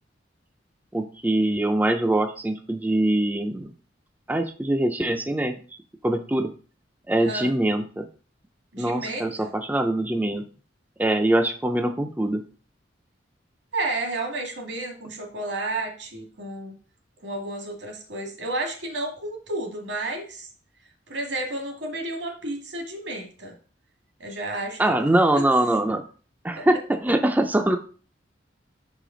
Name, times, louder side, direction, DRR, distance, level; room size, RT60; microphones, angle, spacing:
voice 1, 0.9-3.7 4.3-5.6 6.0-6.5 7.1-8.0 8.8-10.4 11.0-12.4 24.8-26.0 26.4-27.8, right 1 dB, 10° right, 5 dB, 0.4 m, -23 dB
voice 2, 7.2-7.5 8.7-9.5 13.7-16.7 17.2-20.5 21.1-23.5 24.2-25.1 25.3-25.4 26.6-26.7, right 2 dB, 85° right, 2 dB, 1.9 m, -32 dB
5.3 x 4.9 x 3.8 m, 0.39 s
head